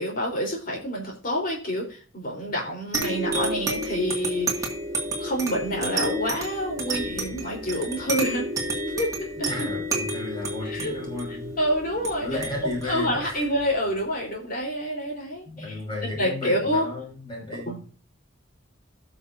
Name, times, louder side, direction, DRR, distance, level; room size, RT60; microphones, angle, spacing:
voice 1, 0.0-4.7 5.2-8.5 8.8-9.5 10.6-10.9 11.6-12.4 12.8-15.8 16.2-16.9 17.7-17.9, equal, 45° left, -1 dB, 3.9 m, -28 dB
sound 1, 2.9-14.0, right 1 dB, 15° right, 2.1 m, -31 dB
voice 2, 9.5-11.6 12.2-13.5 15.5-17.8, left 1 dB, 25° left, -3 dB, 5.5 m, -33 dB
17.5 x 6.1 x 2.7 m, 0.38 s
head